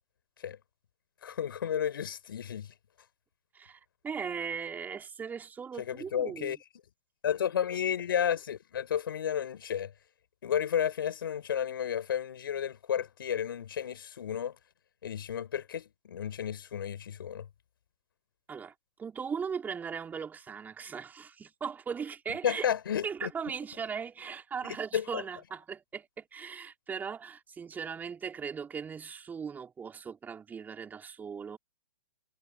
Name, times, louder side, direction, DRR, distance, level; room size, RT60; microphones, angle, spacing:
voice 1, 1.2-2.7 5.8-6.6 7.2-9.9 10.4-14.6 15.0-17.5 22.4-23.3 24.7-25.2, left 9 dB, 65° left, 6.5 m, -32 dB
voice 2, 3.5-6.6 18.5-22.6 23.0-31.6, right 6 dB, 15° right, 5.1 m, -38 dB
figure-of-eight pair, 120°, 13 cm